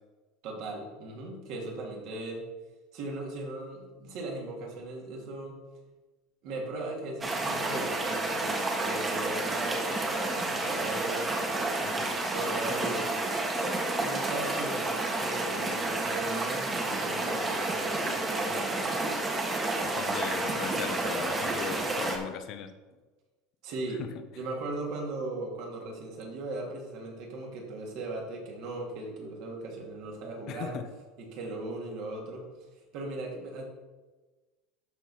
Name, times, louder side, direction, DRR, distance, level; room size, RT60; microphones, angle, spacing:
voice 1, 0.4-2.4 2.9-5.6 6.4-11.8 12.2-13.1 13.6-19.2 23.6-24.1 24.3-30.8 31.2-32.4 32.9-33.6, right 2 dB, 60° right, -1 dB, 2.7 m, -38 dB
sound 1, 7.2-22.2, right 2 dB, 25° right, 1.7 m, -30 dB
voice 2, 19.8-22.7 24.0-24.1 30.5-30.9, left 8 dB, 55° left, 9 dB, 1.0 m, -38 dB
13.0 x 4.6 x 4.4 m, 1.2 s
supercardioid pair, 110°, 0 cm